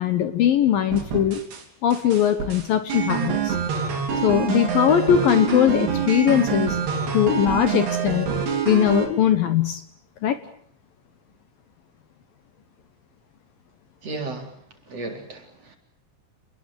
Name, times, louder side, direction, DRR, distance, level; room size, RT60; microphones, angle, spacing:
voice 1, 0.0-1.4 1.8-3.6 4.2-6.8 7.1-8.3 8.7-9.8 10.2-10.4, left 10 dB, 65° left, 10 dB, 2.6 m, -20 dB
sound 1, 0.9-1.6 1.9-9.1, right 7 dB, 65° right, 6.3 m, -26 dB
voice 2, 14.0-15.8, right 2 dB, 35° right, 4 dB, 4.7 m, -35 dB
29.5 x 21.0 x 7.9 m, 0.64 s
omnidirectional pair, 5.0 m